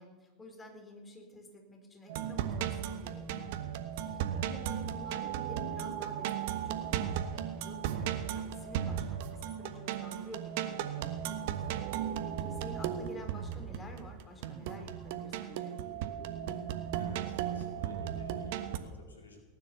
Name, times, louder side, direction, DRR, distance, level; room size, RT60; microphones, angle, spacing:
voice 1, 0.0-3.5 3.9-11.2 11.6-15.7, left 1 dB, 20° left, 3 dB, 4.3 m, -50 dB
sound 1, 2.1-18.8, right 9 dB, 60° right, 1.2 m, -36 dB
sound 2, 4.5-15.5, left 1 dB, 50° left, 6.5 m, -61 dB
voice 2, 17.0-19.4, left 1 dB, 85° left, 3 dB, 2.5 m, -52 dB
18.5 x 9.9 x 7.0 m, 1.4 s
figure-of-eight pair, 85°, 0 cm